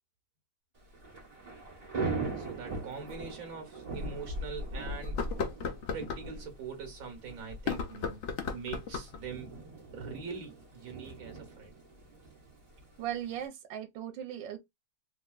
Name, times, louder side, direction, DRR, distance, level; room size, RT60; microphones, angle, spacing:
Thunder / Rain, 0.8-13.5, right 2 dB, 25° right, 1.2 m, -40 dB
sound 1, 1.8-1.9 3.1-3.2 3.8-3.9 5.0-6.3 7.5-9.2, left 5 dB, 90° left, 0.6 m, -35 dB
voice 1, 1.9-5.3 5.9-8.2 8.5-9.5 9.9-11.7, right 5 dB, 55° right, 1.5 m, -43 dB
voice 2, 13.0-14.6, right 11 dB, 85° right, 1.3 m, -38 dB
3.5 x 2.8 x 2.3 m
omnidirectional pair, 2.0 m